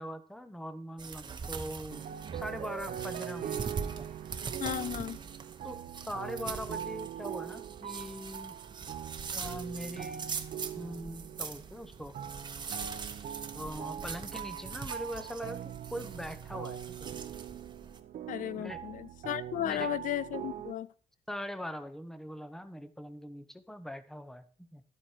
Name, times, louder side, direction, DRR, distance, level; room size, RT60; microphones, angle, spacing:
voice 1, 0.0-2.0 2.3-3.6 4.0-4.1 5.6-8.6 9.3-10.3 10.7-12.1 13.5-17.1 18.6-18.8 19.5-19.9 21.3-24.8, equal, 5° left, 0.7 m, -42 dB
sound 1, 1.0-18.0, right 5 dB, 30° right, 0.8 m, -42 dB
sound 2, 1.9-20.7, right 10 dB, 70° right, 0.7 m, -42 dB
voice 2, 4.6-5.2 18.3-20.9, left 12 dB, 70° left, 0.4 m, -35 dB
12.0 x 8.0 x 4.5 m
wide cardioid pair, 160°, 14 cm